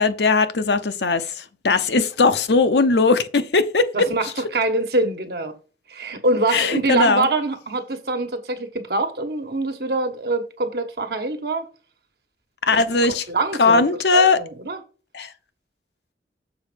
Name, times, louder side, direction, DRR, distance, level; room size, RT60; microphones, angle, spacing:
voice 1, 0.0-4.1 6.5-7.3 12.7-13.2 13.6-14.4 15.1-15.3, left 3 dB, 80° left, 0.8 m, -19 dB
voice 2, 3.9-5.5 5.9-11.7 13.0-13.8 14.1-14.8, right 2 dB, 65° right, 1.3 m, -24 dB
7.0 x 4.3 x 5.2 m
head